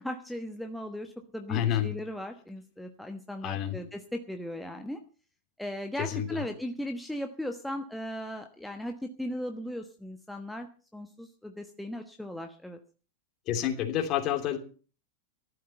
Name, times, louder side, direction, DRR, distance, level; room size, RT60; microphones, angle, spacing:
voice 1, 0.0-5.0 5.6-12.8, equal, 5° left, 5 dB, 1.2 m, -37 dB
voice 2, 1.5-1.9 3.4-3.8 6.0-6.4 13.5-14.6, left 11 dB, 35° left, 5 dB, 3.0 m, -29 dB
14.5 x 12.0 x 5.6 m, 0.39 s
figure-of-eight pair, 90°, 0 cm